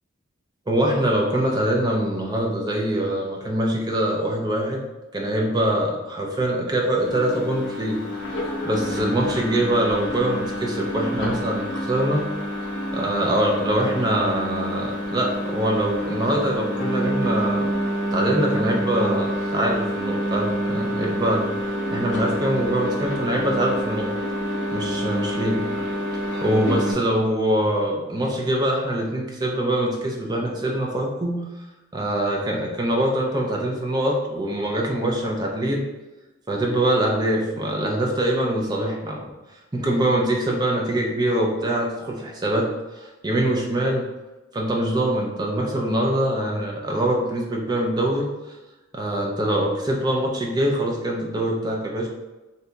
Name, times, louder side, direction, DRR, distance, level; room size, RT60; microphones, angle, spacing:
voice 1, 0.7-4.8 5.1-8.0 8.6-12.2 12.9-17.7 18.1-21.4 21.9-24.1 24.7-25.6 26.4-31.4 31.9-35.8 36.5-39.3 39.7-44.1 44.5-48.3 48.9-52.1, right 1 dB, 20° right, -1 dB, 0.4 m, -23 dB
sound 1, 7.0-26.9, equal, 60° left, 0.7 m, -27 dB
2.7 x 2.2 x 3.8 m, 1.1 s
head